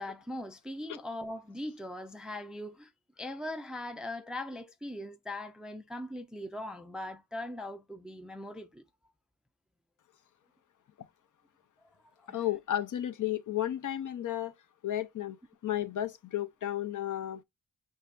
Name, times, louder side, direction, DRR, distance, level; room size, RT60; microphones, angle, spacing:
voice 1, 0.0-2.9 3.2-8.8 12.2-12.4, left 1 dB, ahead, 0.3 m, -40 dB
voice 2, 12.3-14.5 14.8-15.4 15.6-17.4, left 12 dB, 60° left, 0.5 m, -33 dB
5.6 x 3.2 x 2.3 m
wide cardioid pair, 145°, 35 cm